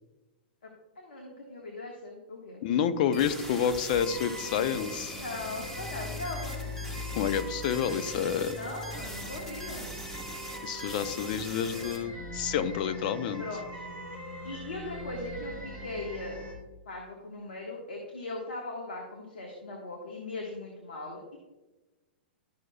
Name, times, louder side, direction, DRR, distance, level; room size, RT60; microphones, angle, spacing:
voice 1, 1.0-2.7 5.1-6.6 8.5-9.9 13.4-13.8 14.4-16.4 16.8-21.4, left 2 dB, 80° left, 0 dB, 1.5 m, -39 dB
voice 2, 2.6-5.2 7.2-8.6 10.6-13.4, left 8 dB, 55° left, 11 dB, 0.6 m, -29 dB
sound 1, 3.1-12.0, right 1 dB, 10° left, 1.7 m, -42 dB
sound 2, 3.9-16.5, left 1 dB, 35° left, 2.8 m, -41 dB
12.0 x 6.1 x 2.3 m, 1.1 s
hypercardioid pair, 110°, 6 cm